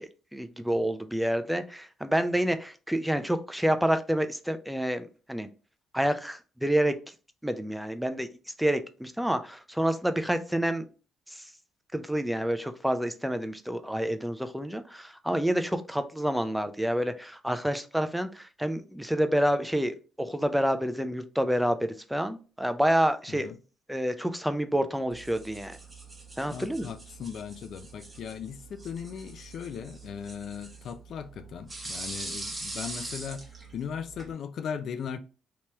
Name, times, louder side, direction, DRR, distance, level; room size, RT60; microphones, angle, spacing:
voice 1, 0.0-5.5 5.9-7.0 7.4-8.3 8.6-10.9 11.3-11.4 11.9-23.5 23.9-25.8 26.4-26.9, equal, 5° right, 0.4 m, -28 dB
sound 1, 25.1-34.3, right 2 dB, 20° right, 1.3 m, -42 dB
voice 2, 26.5-33.4 33.7-35.2, left 7 dB, 65° left, 0.3 m, -38 dB
3.1 x 2.9 x 3.3 m
cardioid pair, 90°, 0 cm